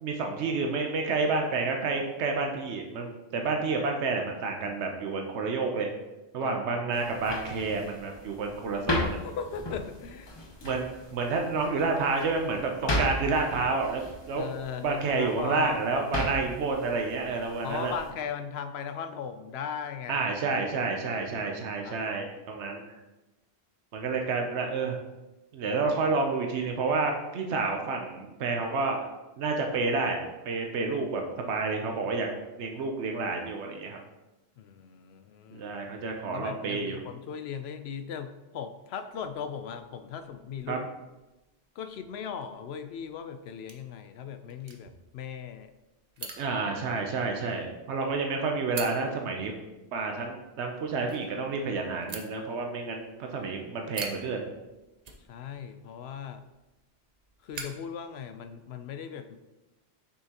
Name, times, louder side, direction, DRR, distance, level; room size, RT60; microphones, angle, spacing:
voice 1, 0.0-5.9 6.3-9.2 10.6-14.4 14.8-18.0 20.1-23.0 23.9-25.0 25.5-29.0 29.4-32.3 32.6-34.0 35.5-37.0 40.7-40.8 46.4-49.5 49.9-54.4, right 4 dB, 85° right, 2 dB, 1.0 m, -29 dB
sound 1, 6.9-18.1, left 1 dB, 25° left, 0.8 m, -36 dB
voice 2, 9.2-10.4 10.6-10.8 14.4-15.8 17.6-20.2 21.1-21.5 21.8-22.4 34.6-35.7 36.3-40.9 41.8-45.7 46.2-46.3 55.3-56.4 57.4-59.4, left 7 dB, 75° left, 9 dB, 0.8 m, -38 dB
sound 2, 39.1-58.7, right 4 dB, 40° right, 0.7 m, -48 dB
6.7 x 5.6 x 2.9 m, 1.0 s
omnidirectional pair, 1.1 m